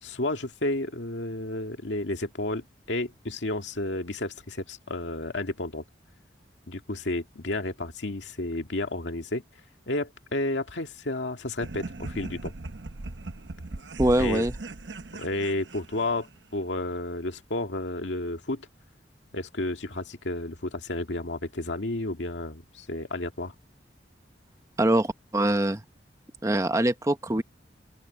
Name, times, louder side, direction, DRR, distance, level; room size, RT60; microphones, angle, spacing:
voice 1, 0.0-5.8 6.7-9.4 9.9-12.5 14.2-14.5 15.2-18.7 19.3-23.5, left 2 dB, 80° left, 2.0 m, -31 dB
sound 1, 11.6-16.4, right 2 dB, 75° right, 1.0 m, -38 dB
voice 2, 14.0-14.5 24.8-25.8 26.4-27.4, right 1 dB, 15° right, 0.9 m, -23 dB
open air
head